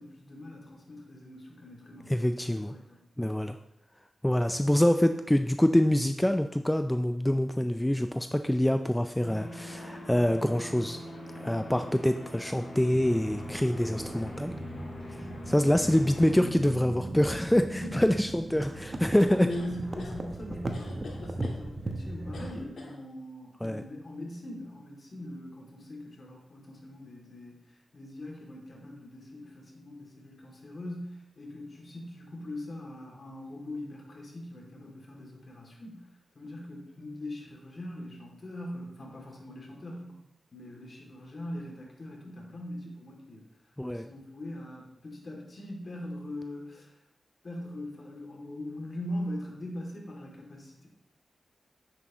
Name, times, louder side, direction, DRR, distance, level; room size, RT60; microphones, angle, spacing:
voice 1, 0.0-3.0 17.7-18.0 18.9-27.6 27.9-36.1 36.3-40.2 40.5-43.4 43.9-47.0 47.4-50.9, left 1 dB, 50° left, -1 dB, 2.7 m, -41 dB
voice 2, 2.1-2.7 3.2-3.6 4.2-11.0 11.3-14.5 15.5-19.5 23.6-23.8 43.8-44.1, left 1 dB, 10° left, 8 dB, 0.4 m, -25 dB
sound 1, 9.2-16.3, left 1 dB, 70° left, 3.2 m, -43 dB
sound 2, 12.9-22.6, right 1 dB, 40° right, 1.1 m, -38 dB
sound 3, 19.5-20.2 20.7-21.6 22.3-23.0, left 3 dB, 85° left, 1.6 m, -46 dB
9.9 x 7.7 x 3.1 m, 0.85 s
cardioid pair, 65°, 0 cm